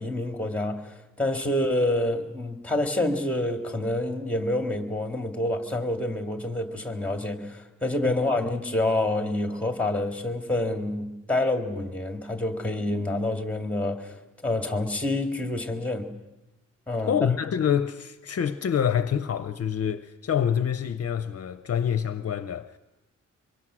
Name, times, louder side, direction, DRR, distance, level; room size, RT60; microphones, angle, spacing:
voice 1, 0.0-14.2 14.4-16.1 16.9-17.2, left 1 dB, 5° left, 2.0 m, -27 dB
voice 2, 17.1-22.8, left 8 dB, 55° left, 0.7 m, -26 dB
24.0 x 23.5 x 6.2 m
wide cardioid pair, 150°, 30 cm